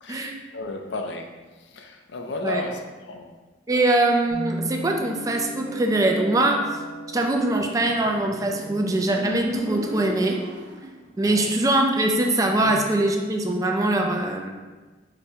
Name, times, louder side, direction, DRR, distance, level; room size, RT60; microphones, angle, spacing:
voice 1, 0.0-3.4 11.2-11.5 12.6-12.8, left 2 dB, 75° left, 4 dB, 0.5 m, -34 dB
voice 2, 3.7-6.6 7.1-10.4 11.2-14.5, right 2 dB, 20° right, 2 dB, 0.4 m, -22 dB
Guitar, 4.3-9.4, equal, 30° left, 1.0 m, -37 dB
Motorcycle, 7.6-11.1, right 1 dB, 70° right, 0.7 m, -34 dB
5.0 x 2.1 x 4.4 m, 1.3 s
head